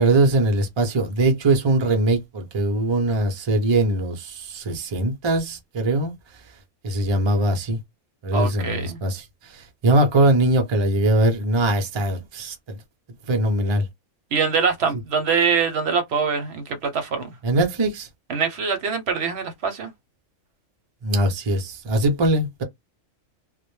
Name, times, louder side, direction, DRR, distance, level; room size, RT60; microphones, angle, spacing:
voice 1, 0.0-6.1 6.8-7.8 8.2-12.5 13.3-13.8 17.4-18.1 21.0-22.6, right 2 dB, 45° right, 0.3 m, -21 dB
voice 2, 8.3-9.0 14.3-17.3 18.3-19.9, right 5 dB, 65° right, 0.8 m, -24 dB
2.1 x 2.1 x 3.0 m
omnidirectional pair, 1.3 m